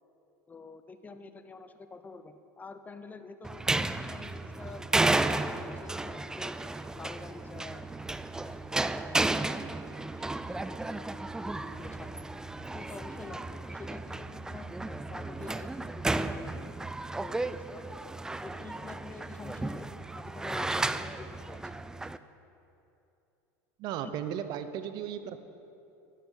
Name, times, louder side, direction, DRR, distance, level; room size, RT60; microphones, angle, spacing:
voice 1, 0.5-6.5 6.9-9.1 9.6-10.3 10.6-12.3 12.7-16.5 17.1-18.0 18.4-19.9 20.1-21.6, left 4 dB, 20° left, 10 dB, 0.7 m, -48 dB
sound 1, 3.4-22.2, right 2 dB, 5° right, 0.3 m, -33 dB
voice 2, 23.8-25.4, right 9 dB, 55° right, 11 dB, 0.7 m, -35 dB
10.5 x 6.8 x 6.9 m, 2.8 s
supercardioid pair, 100°, 9 cm